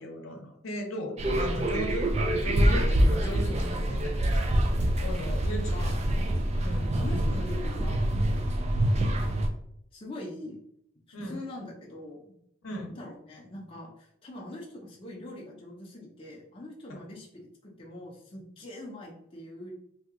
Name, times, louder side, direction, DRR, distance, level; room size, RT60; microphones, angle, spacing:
voice 1, 0.0-4.5 5.0-5.7 6.6-6.9 11.1-11.4 12.6-12.9 16.9-17.0, equal, 75° left, 1 dB, 0.7 m, -37 dB
sound 1, 1.2-9.5, right 1 dB, 30° right, 0.3 m, -26 dB
voice 2, 5.5-6.0 7.0-9.4 9.9-10.6 11.2-12.3 12.7-19.7, left 1 dB, 25° left, -3 dB, 0.5 m, -43 dB
2.7 x 2.3 x 3.5 m, 0.72 s
head